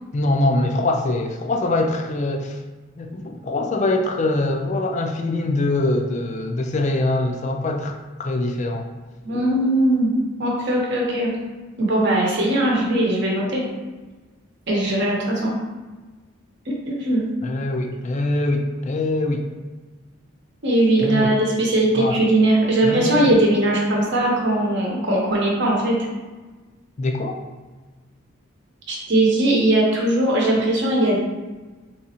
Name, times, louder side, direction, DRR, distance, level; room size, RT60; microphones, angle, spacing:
voice 1, 0.1-2.6 3.0-8.9 17.4-19.5 21.0-21.3 21.9-22.2 22.8-23.3 27.0-27.4, left 2 dB, 35° left, 4 dB, 0.4 m, -23 dB
voice 2, 9.2-10.1 10.4-11.3 11.8-13.6 14.7-15.5 16.7-17.2 20.6-25.9 28.9-31.2, right 1 dB, 55° right, -3 dB, 0.9 m, -19 dB
4.8 x 3.0 x 2.8 m, 1.3 s
head